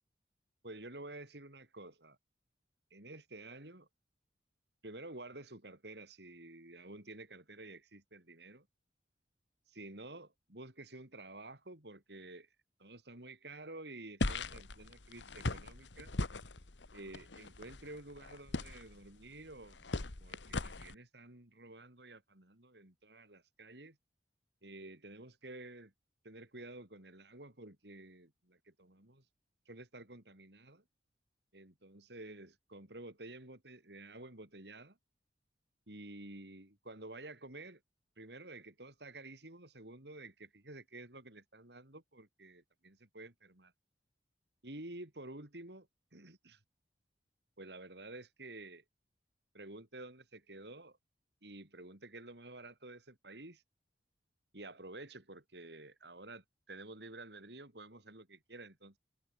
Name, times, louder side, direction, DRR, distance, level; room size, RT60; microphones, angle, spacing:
voice 1, 0.6-2.2 2.9-3.9 4.8-8.7 9.7-12.5 12.8-16.1 16.9-24.0 24.6-25.9 26.2-29.2 29.7-30.8 31.5-35.0 35.9-37.8 38.2-43.7 44.6-46.6 47.6-48.8 49.5-51.0 51.4-53.6 54.5-59.0, right 2 dB, 65° right, 4.1 m, -51 dB
sound 1, 14.2-20.9, left 2 dB, 85° left, 1.5 m, -40 dB
open air
head